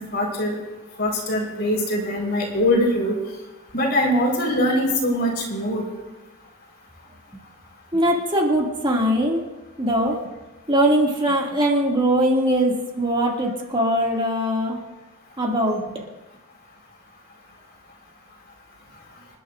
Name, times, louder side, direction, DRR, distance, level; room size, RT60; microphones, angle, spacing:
voice 1, 0.1-0.6 1.0-3.1 3.7-5.8, left 1 dB, 50° left, -1 dB, 4.5 m, -22 dB
voice 2, 7.9-9.4 9.8-10.2 10.7-14.8 15.4-15.8, right 1 dB, 25° right, -2 dB, 2.4 m, -21 dB
27.5 x 11.5 x 2.6 m, 1.0 s
head